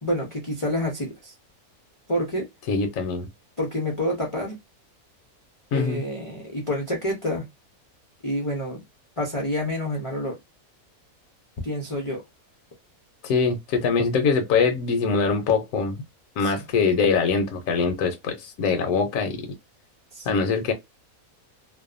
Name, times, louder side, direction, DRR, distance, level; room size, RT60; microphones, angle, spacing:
voice 1, 0.0-1.3 2.1-2.5 3.6-4.6 5.7-7.5 8.2-8.8 9.2-10.4 11.6-12.2 16.4-16.6 20.1-20.4, left 1 dB, 45° left, 0.4 m, -28 dB
voice 2, 2.7-3.3 5.7-6.0 13.2-16.0 16.4-19.5 20.3-20.7, left 5 dB, 70° left, 1.0 m, -23 dB
2.7 x 2.1 x 2.4 m
omnidirectional pair, 1.6 m